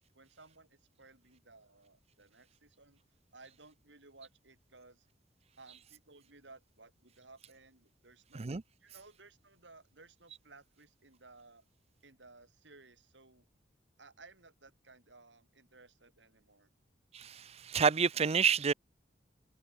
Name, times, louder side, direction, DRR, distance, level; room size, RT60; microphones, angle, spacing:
voice 1, 0.1-3.0 3.3-5.1 5.6-8.5 8.8-11.6 12.0-13.4 14.0-16.7, right 3 dB, 75° right, 6.4 m, -58 dB
voice 2, 17.1-18.7, right 6 dB, 35° right, 0.6 m, -29 dB
head